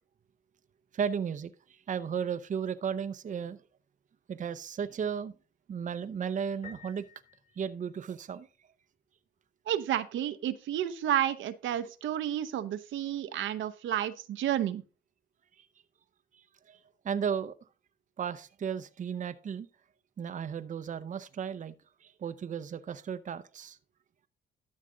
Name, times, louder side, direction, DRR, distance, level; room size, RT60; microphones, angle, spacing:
voice 1, 0.9-3.6 4.3-5.3 5.7-7.0 7.6-8.5 15.6-15.7 16.3-16.8 17.0-17.5 18.2-19.7 20.2-21.7 22.0-23.8, right 7 dB, 40° right, 0.6 m, -35 dB
Piano, 6.6-8.5, left 5 dB, 40° left, 3.6 m, -53 dB
voice 2, 9.7-14.8, right 11 dB, 75° right, 0.8 m, -31 dB
12.5 x 6.5 x 3.8 m
cardioid pair, 90°, 20 cm